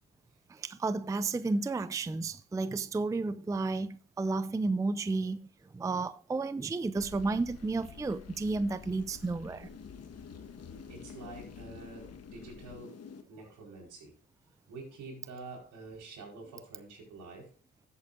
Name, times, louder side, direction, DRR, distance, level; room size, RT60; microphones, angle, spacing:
voice 1, 0.5-5.4 5.7-9.7, right 3 dB, 10° right, 0.4 m, -32 dB
sound 1, 7.0-13.2, left 6 dB, 55° left, 1.4 m, -48 dB
voice 2, 10.9-14.1 14.7-17.5, right 3 dB, 75° right, 4.7 m, -47 dB
13.5 x 8.5 x 2.6 m
cardioid pair, 90°, 30 cm